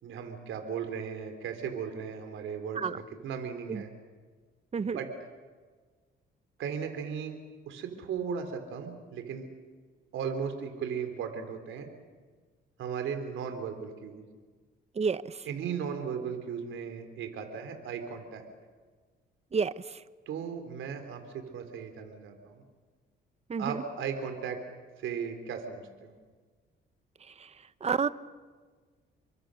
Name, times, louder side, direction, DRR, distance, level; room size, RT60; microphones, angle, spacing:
voice 1, 0.0-2.9 3.2-3.9 4.8-5.1 6.6-7.4 7.7-9.5 10.1-11.9 12.8-14.3 15.5-18.5 20.3-22.6 23.6-24.6 25.0-26.2, right 7 dB, 80° right, 6 dB, 3.8 m, -36 dB
voice 2, 23.5-23.8 27.8-28.1, right 5 dB, 35° right, 14 dB, 1.0 m, -28 dB
29.0 x 24.0 x 6.6 m, 1.4 s
cardioid pair, 90°, 20 cm